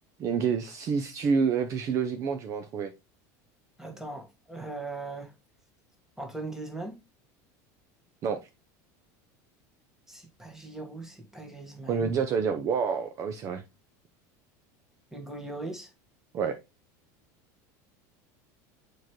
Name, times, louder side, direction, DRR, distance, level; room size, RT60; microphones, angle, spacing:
voice 1, 0.2-2.9 8.2-8.4 11.9-13.6 16.3-16.6, right 6 dB, 35° right, 0.6 m, -28 dB
voice 2, 3.8-5.3 6.2-7.0 10.1-12.1 15.1-15.9, right 2 dB, 5° right, 1.5 m, -39 dB
7.1 x 4.7 x 3.0 m
supercardioid pair, 140°, 9 cm